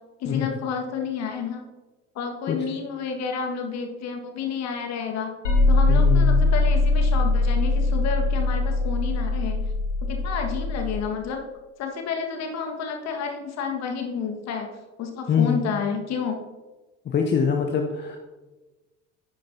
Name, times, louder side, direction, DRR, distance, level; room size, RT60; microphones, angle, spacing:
voice 1, 0.2-1.6 2.1-5.3 5.7-9.7 10.0-11.4 11.8-14.7 15.0-16.4, left 6 dB, 45° left, 3 dB, 1.7 m, -30 dB
sound 1, 5.4-11.0, left 2 dB, 75° left, 2.0 m, -21 dB
voice 2, 5.9-6.4 15.3-15.6 17.0-18.2, left 7 dB, 30° left, 3 dB, 0.9 m, -24 dB
10.0 x 9.8 x 2.8 m, 1.2 s
figure-of-eight pair, 60°, 36 cm